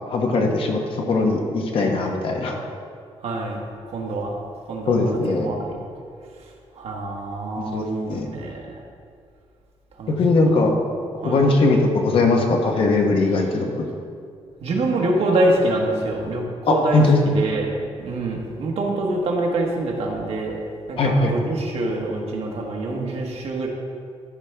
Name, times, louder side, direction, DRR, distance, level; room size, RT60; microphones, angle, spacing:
voice 1, 0.1-2.6 4.9-5.5 7.7-8.3 10.1-10.7 11.2-13.9 16.6-17.2 21.0-21.3, left 3 dB, 55° left, 2 dB, 1.0 m, -20 dB
voice 2, 3.2-3.6 3.9-4.4 4.7-5.8 6.7-8.8 10.0-10.2 11.2-11.4 14.6-17.7 18.0-20.6 20.9-23.7, right 2 dB, 65° right, 0 dB, 1.3 m, -25 dB
13.0 x 5.2 x 3.4 m, 2.2 s
wide cardioid pair, 160°, 11 cm